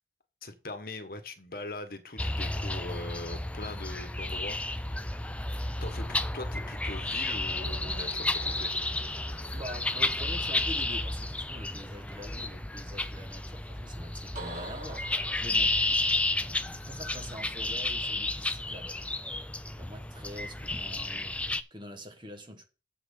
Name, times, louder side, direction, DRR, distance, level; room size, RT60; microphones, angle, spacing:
voice 1, 0.4-4.6 5.8-8.7, left 2 dB, 55° left, 1.3 m, -41 dB
sound 1, 2.2-21.6, left 2 dB, 5° left, 0.4 m, -32 dB
sound 2, 7.6-11.9 14.3-16.7, right 2 dB, 45° right, 4.1 m, -48 dB
voice 2, 9.5-15.1 15.4-15.8 16.8-19.0 19.7-21.4 21.7-22.6, equal, 25° right, 1.5 m, -45 dB
7.5 x 6.0 x 6.7 m
head